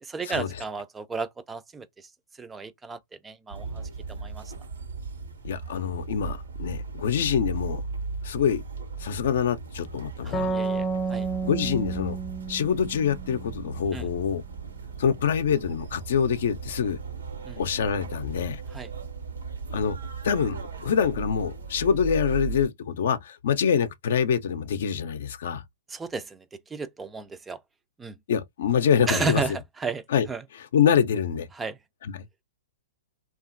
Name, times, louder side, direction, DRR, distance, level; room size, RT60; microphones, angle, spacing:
voice 1, 0.0-1.9 2.4-3.0 3.2-3.8 4.1-4.4 10.2-11.3 13.9-14.1 17.5-17.6 18.7-18.9 25.9-26.4 26.7-27.6 28.0-28.1 29.1-29.5 29.8-30.0 30.3-30.4 31.5-31.8, right 4 dB, 15° right, 0.3 m, -33 dB
sound 1, 3.5-22.7, right 5 dB, 90° right, 0.9 m, -37 dB
voice 2, 5.4-7.8 8.2-8.6 9.0-10.5 11.4-12.2 12.5-14.4 15.0-17.0 17.6-18.6 19.7-20.0 20.2-25.6 28.3-29.6 30.1-30.3 30.5-31.5 32.0-32.3, left 7 dB, 70° left, 0.5 m, -25 dB
sound 2, 10.3-13.8, right 4 dB, 30° left, 0.6 m, -31 dB
2.8 x 2.4 x 2.5 m
hypercardioid pair, 130°, 0 cm